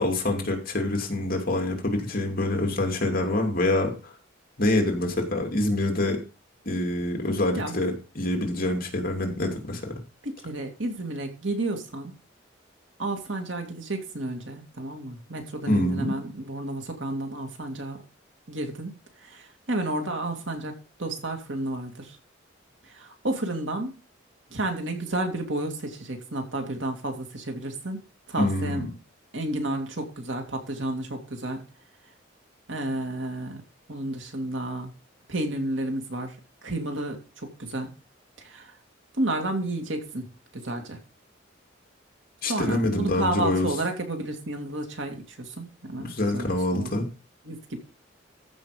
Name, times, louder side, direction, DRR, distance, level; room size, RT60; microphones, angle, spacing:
voice 1, 0.0-4.1 4.6-6.2 6.6-10.0 15.7-16.1 28.4-28.8 42.4-43.7 46.0-47.1, left 1 dB, 50° left, 3 dB, 2.7 m, -26 dB
voice 2, 10.2-12.1 13.0-18.0 18.5-18.9 19.2-22.2 22.8-23.9 24.5-28.9 29.3-31.6 32.7-33.6 33.9-34.9 35.3-36.4 36.6-37.9 38.4-38.7 39.1-41.0 42.4-47.1 47.4-47.8, right 1 dB, 70° right, 4 dB, 2.6 m, -31 dB
14.0 x 5.5 x 5.1 m, 0.34 s
head